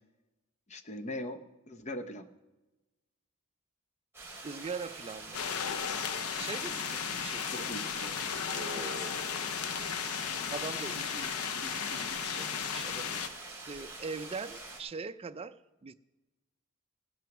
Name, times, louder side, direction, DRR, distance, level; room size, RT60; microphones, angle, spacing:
voice 1, 0.7-2.3 7.5-8.5, left 1 dB, 35° left, 9 dB, 0.8 m, -41 dB
sound 1, 4.1-14.8, right 2 dB, 10° right, 2.8 m, -46 dB
voice 2, 4.4-5.4 6.4-7.7 8.5-9.2 10.5-11.4 11.6-13.2 13.6-15.9, right 4 dB, 25° right, 11 dB, 0.4 m, -42 dB
sound 2, 5.3-13.3, left 7 dB, 90° left, 0.7 m, -35 dB
17.0 x 6.2 x 6.0 m, 1.1 s
head